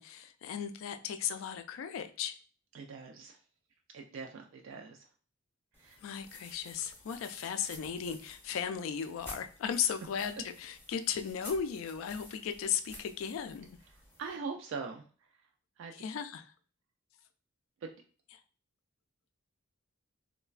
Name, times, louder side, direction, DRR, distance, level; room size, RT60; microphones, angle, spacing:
voice 1, 0.0-2.3 6.0-13.8 15.9-16.5, left 8 dB, 80° left, 0.3 m, -36 dB
voice 2, 2.7-3.4 3.9-5.1 5.8-6.0 14.2-15.0 15.8-15.9 17.8-17.9, right 5 dB, 70° right, 0.3 m, -42 dB
sound 1, 5.7-14.3, left 1 dB, 10° left, 0.5 m, -52 dB
3.2 x 2.1 x 2.3 m
head